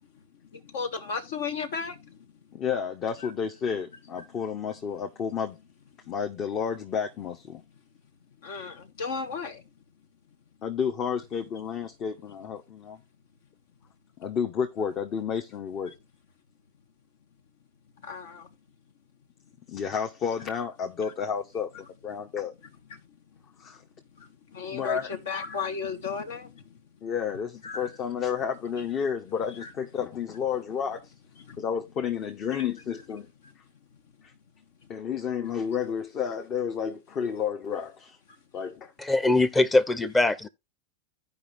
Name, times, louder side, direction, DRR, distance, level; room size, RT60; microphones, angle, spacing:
voice 1, 0.5-2.2 8.4-9.6 18.0-18.5 24.2-26.6 27.6-27.9 29.6-29.7 31.5-31.6, left 5 dB, 70° left, 1.6 m, -34 dB
voice 2, 2.5-5.6 6.1-7.6 10.6-13.0 14.2-15.9 19.7-21.7 22.0-22.5 23.6-23.8 24.7-25.2 27.0-31.1 31.6-33.3 34.9-38.2 38.5-38.9, left 7 dB, 40° left, 1.1 m, -31 dB
voice 3, 39.0-40.5, left 2 dB, 15° left, 0.8 m, -22 dB
15.5 x 5.3 x 2.6 m
hypercardioid pair, 105°, 0 cm